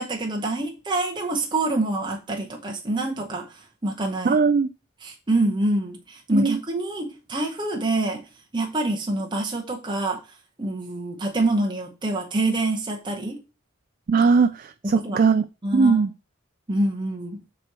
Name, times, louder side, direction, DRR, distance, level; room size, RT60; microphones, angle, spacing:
voice 1, 0.0-4.4 5.0-8.2 8.5-10.2 10.6-13.4 14.8-15.2 15.6-16.1 16.7-17.4, right 2 dB, 25° right, 0.9 m, -26 dB
voice 2, 4.2-4.7 6.3-6.6 14.1-15.4 15.7-16.1, right 5 dB, 45° right, 0.3 m, -19 dB
7.6 x 3.0 x 6.0 m
head